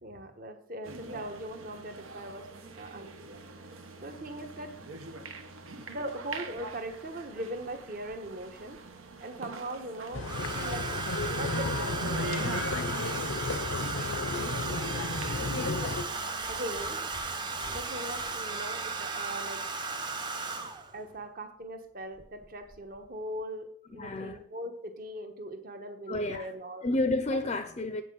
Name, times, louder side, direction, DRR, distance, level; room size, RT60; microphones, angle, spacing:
voice 1, 0.0-2.5 2.8-3.4 4.0-4.8 5.9-8.8 9.2-10.9 11.3-12.6 15.8-16.0 16.5-17.0 17.7-19.9 20.9-26.9 27.3-27.4, right 1 dB, 45° right, 6 dB, 1.1 m, -40 dB
sound 1, 0.8-20.7, right 3 dB, 80° right, 1.1 m, -45 dB
Domestic sounds home sounds, 8.1-8.8 10.2-21.0 22.2-22.5 22.7-23.1, right 4 dB, 20° right, 0.7 m, -35 dB
sound 2, 10.1-16.0, left 3 dB, 75° left, 0.7 m, -33 dB
voice 2, 15.4-15.8 23.9-24.4 26.1-26.5 26.8-28.0, left 2 dB, 30° left, 9 dB, 0.5 m, -31 dB
8.4 x 5.8 x 7.1 m, 0.68 s
head